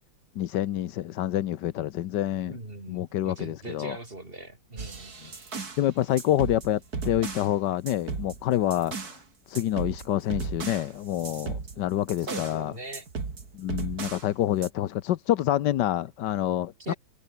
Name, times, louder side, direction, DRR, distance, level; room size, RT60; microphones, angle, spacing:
voice 1, 0.4-2.6 2.9-4.0 5.8-9.2 9.5-12.7 13.5-16.9, left 12 dB, 75° left, 1.4 m, -27 dB
voice 2, 2.5-5.4 12.2-13.1 16.8-17.0, right 2 dB, 30° right, 4.0 m, -41 dB
sound 1, 4.8-5.8 6.2-7.5 7.9-9.2 9.5-12.6 12.9-14.3 14.6-14.7, right 4 dB, 55° right, 3.3 m, -36 dB
omnidirectional pair, 1.9 m